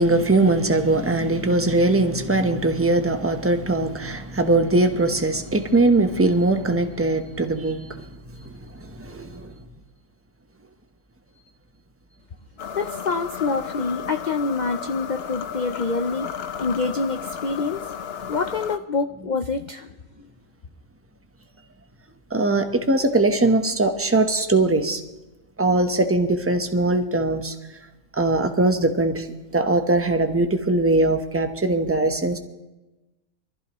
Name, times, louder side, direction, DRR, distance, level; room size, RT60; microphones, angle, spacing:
voice 1, 0.0-8.1 8.4-9.5 22.3-25.0 25.6-27.5 28.1-29.3 29.5-32.4, right 2 dB, 10° right, 6 dB, 0.8 m, -21 dB
sound 1, 12.6-18.8, left 8 dB, 55° left, 0.8 m, -34 dB
voice 2, 12.7-16.3 16.6-17.8 18.3-19.9, left 4 dB, 70° left, 7 dB, 0.4 m, -26 dB
23.5 x 14.5 x 3.0 m, 1.0 s
omnidirectional pair, 1.6 m